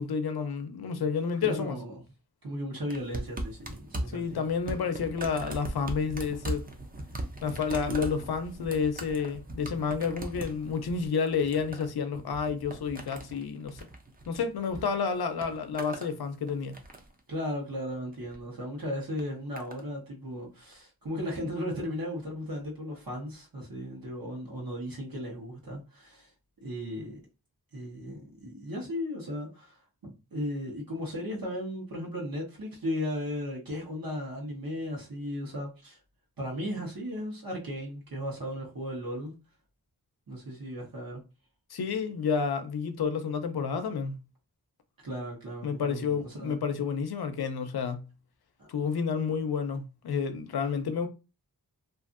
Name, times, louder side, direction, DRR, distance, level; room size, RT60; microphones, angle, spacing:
voice 1, 0.0-1.8 4.1-6.6 7.4-13.9 14.3-16.8 41.7-44.1 45.6-48.1 48.7-51.1, left 6 dB, 85° left, 0.6 m, -30 dB
voice 2, 1.4-2.0 2.4-4.5 17.3-26.3 26.6-27.2 27.7-36.0 36.4-39.3 40.3-41.2 45.0-46.5 48.6-48.7, equal, 65° right, 1.1 m, -36 dB
sound 1, 2.9-14.8 15.1-16.1 16.5-17.2 18.1-18.4 19.2-19.8 20.7-20.8, right 1 dB, 25° right, 0.5 m, -39 dB
2.6 x 2.5 x 2.5 m
wide cardioid pair, 85°, 37 cm